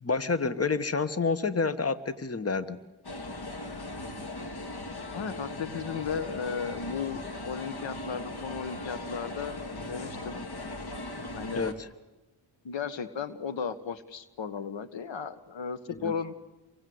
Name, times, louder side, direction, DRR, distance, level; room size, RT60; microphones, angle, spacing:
voice 1, 0.0-2.8 11.5-11.9 15.9-16.1, left 4 dB, 30° left, 14 dB, 1.5 m, -29 dB
sound 1, 3.0-11.7, left 2 dB, 55° left, 3.2 m, -39 dB
voice 2, 5.1-10.5 11.2-11.7 12.6-16.3, left 6 dB, 75° left, 13 dB, 1.6 m, -35 dB
29.0 x 24.0 x 8.0 m, 1.1 s
cardioid pair, 55°, 46 cm